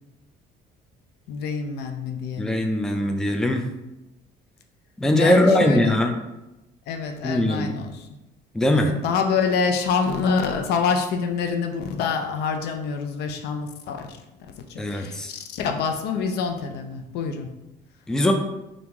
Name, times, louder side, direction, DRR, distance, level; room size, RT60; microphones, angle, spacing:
voice 1, 1.3-2.6 5.1-6.0 6.9-8.1 8.7-14.2 14.7-17.5, left 5 dB, 80° left, 5 dB, 0.5 m, -26 dB
voice 2, 2.4-3.7 5.0-6.2 7.2-7.7 8.5-9.0 14.8-15.3 18.1-18.3, left 1 dB, 5° left, 5 dB, 0.3 m, -20 dB
2.9 x 2.5 x 3.6 m, 0.95 s
cardioid pair, 110°, 17 cm